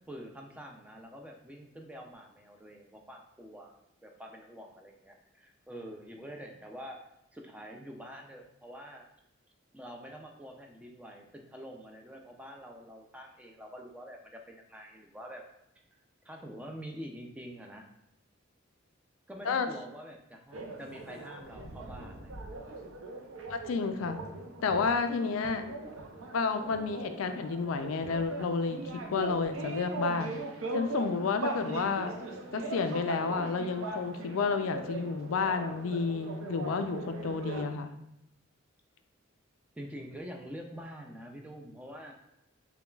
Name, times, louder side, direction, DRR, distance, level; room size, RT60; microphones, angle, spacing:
voice 1, 0.1-3.7 4.0-7.0 7.3-9.1 9.7-15.4 16.2-17.9 19.3-22.5 23.8-24.5 39.8-42.1, equal, 5° right, 1 dB, 0.3 m, -46 dB
sound 1, 20.5-37.6, right 2 dB, 75° right, 0.6 m, -40 dB
voice 2, 23.5-24.2 24.6-25.6 26.3-30.4 30.7-32.1 32.5-37.9, left 4 dB, 75° left, 8 dB, 0.4 m, -31 dB
6.8 x 2.3 x 2.3 m, 0.82 s
head